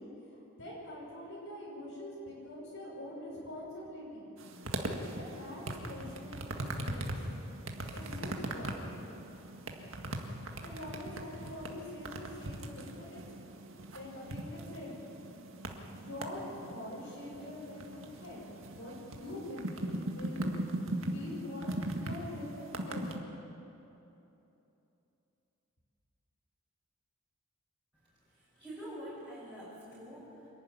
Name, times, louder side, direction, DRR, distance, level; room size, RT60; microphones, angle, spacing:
voice 1, 0.0-4.3 5.1-7.1 7.9-8.9 10.6-13.2 13.9-15.2 15.9-18.5 18.8-20.4 21.0-23.3, left 1 dB, 65° left, -6 dB, 6.3 m, -44 dB
sound 1, 4.4-23.2, right 1 dB, 65° right, 1.9 m, -40 dB
voice 2, 28.3-30.5, equal, 5° right, -13 dB, 6.8 m, -46 dB
26.5 x 11.5 x 9.6 m, 3.0 s
head